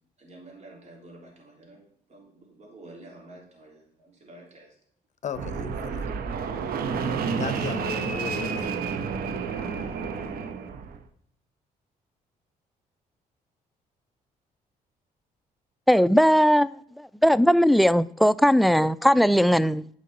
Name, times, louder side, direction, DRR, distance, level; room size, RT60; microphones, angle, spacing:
voice 1, 0.2-4.8, right 2 dB, 45° right, 3.5 m, -49 dB
voice 2, 5.2-6.1 7.4-8.8, left 7 dB, 50° left, 0.8 m, -35 dB
Fixed-wing aircraft airplane, 5.3-11.0, right 5 dB, 70° right, 0.9 m, -30 dB
voice 3, 15.9-16.7 17.2-19.9, equal, ahead, 0.3 m, -19 dB
9.2 x 5.3 x 4.2 m
supercardioid pair, 70°, 16 cm